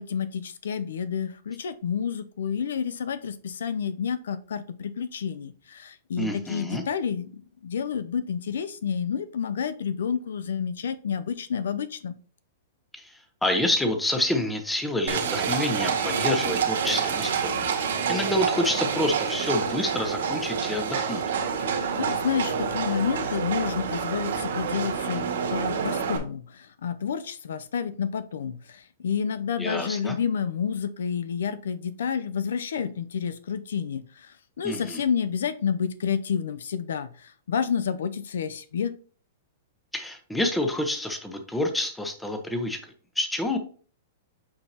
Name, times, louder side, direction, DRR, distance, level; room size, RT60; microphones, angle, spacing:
voice 1, 0.0-12.2 21.6-38.9, left 7 dB, 85° left, 13 dB, 0.5 m, -30 dB
voice 2, 6.2-6.8 12.9-17.5 18.1-21.2 29.6-30.1 34.6-35.0 39.9-42.8 43.2-43.6, left 1 dB, 5° left, 5 dB, 1.0 m, -28 dB
Livestock farm animals working animals, 15.1-26.2, right 6 dB, 80° right, 1.9 m, -28 dB
8.5 x 4.6 x 2.9 m, 0.42 s
hypercardioid pair, 150°, 0 cm